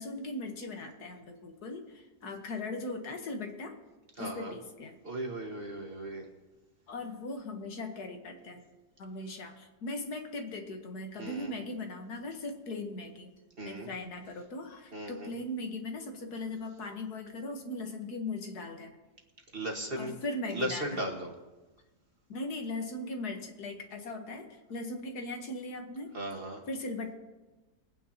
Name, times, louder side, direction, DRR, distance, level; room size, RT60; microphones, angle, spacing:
voice 1, 0.0-3.8 4.2-4.9 6.9-8.6 9.0-13.3 13.7-18.9 20.0-21.0 22.3-26.1 26.7-27.1, left 2 dB, 70° left, 4 dB, 1.8 m, -39 dB
voice 2, 4.2-4.5 5.0-6.3 11.2-11.5 13.6-13.9 14.9-15.3 19.5-20.1 20.5-21.3 26.1-26.6, right 1 dB, 35° right, 1 dB, 1.7 m, -37 dB
23.0 x 9.2 x 2.9 m, 1.2 s
omnidirectional pair, 1.7 m